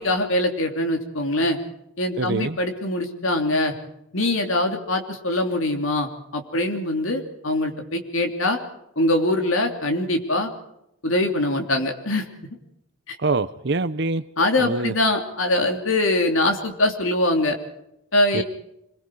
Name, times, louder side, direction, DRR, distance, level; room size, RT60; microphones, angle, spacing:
voice 1, 0.0-1.6 2.0-3.7 4.1-8.6 9.0-10.5 11.0-12.2 13.1-13.2 14.4-17.6 18.1-18.4, left 1 dB, 75° left, 3.0 m, -23 dB
voice 2, 2.2-2.6 13.2-14.2 14.6-14.9 18.3-18.4, right 3 dB, 55° right, 0.8 m, -24 dB
26.5 x 22.0 x 4.8 m
head